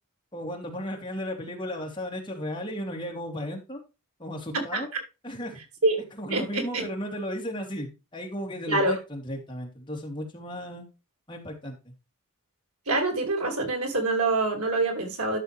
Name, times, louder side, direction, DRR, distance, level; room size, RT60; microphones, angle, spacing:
voice 1, 0.3-3.8 4.2-4.9 5.2-5.6 6.2-10.9 11.3-11.9, equal, 20° left, 2.6 m, -35 dB
voice 2, 4.5-5.0 5.8-6.0 6.3-6.9 8.7-9.0 12.9-15.4, right 2 dB, 80° right, 2.7 m, -26 dB
12.0 x 6.3 x 3.3 m
head